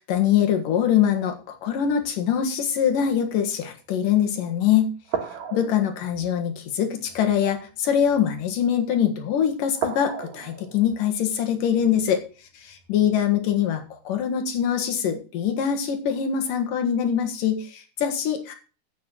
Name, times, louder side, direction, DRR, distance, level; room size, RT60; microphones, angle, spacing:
voice 1, 0.0-4.9 5.5-12.2 12.6-18.5, left 9 dB, 80° left, 5 dB, 3.1 m, -23 dB
sound 1, 1.0-2.3 2.9-3.1 4.0-4.1 5.0-8.7 9.2-9.4 9.7-13.2 13.9-14.1, right 7 dB, 75° right, 3.3 m, -37 dB
9.5 x 8.2 x 6.4 m, 0.36 s
omnidirectional pair, 3.8 m